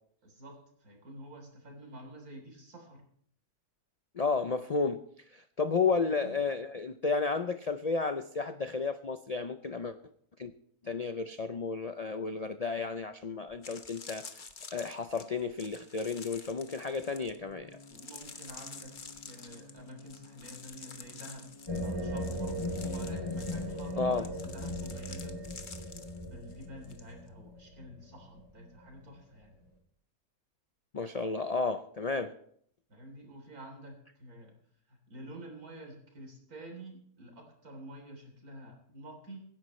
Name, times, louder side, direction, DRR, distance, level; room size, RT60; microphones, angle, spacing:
voice 1, 0.2-3.0 6.1-6.4 17.9-18.9 19.3-21.5 21.8-25.4 26.2-29.6 32.9-34.5 34.9-39.4, right 1 dB, 80° right, 2 dB, 4.1 m, -49 dB
voice 2, 4.2-5.0 5.3-10.0 10.4-10.5 10.8-14.3 14.7-17.7 24.0-24.3 30.9-32.3, left 4 dB, 80° left, 9 dB, 0.3 m, -32 dB
sound 1, 13.0-13.1 13.5-27.0 27.3-27.6, left 4 dB, 35° left, 1.1 m, -49 dB
sound 2, 16.6-22.1, left 2 dB, 25° right, 4.5 m, -55 dB
sound 3, 21.7-28.9, left 1 dB, 20° left, 3.2 m, -38 dB
24.5 x 10.5 x 3.2 m, 0.65 s
omnidirectional pair, 1.6 m